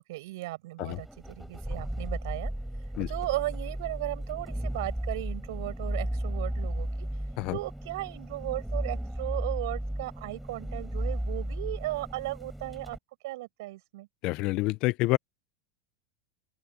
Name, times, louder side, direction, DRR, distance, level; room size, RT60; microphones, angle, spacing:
voice 1, 0.0-2.5 3.1-7.1 7.5-13.0 13.2-14.1, right 18 dB, 65° right, 8.0 m, -36 dB
sound 1, 0.9-13.0, right 1 dB, ahead, 3.8 m, -34 dB
voice 2, 14.2-15.2, left 21 dB, 35° left, 0.3 m, -27 dB
open air
supercardioid pair, 175°, 2 cm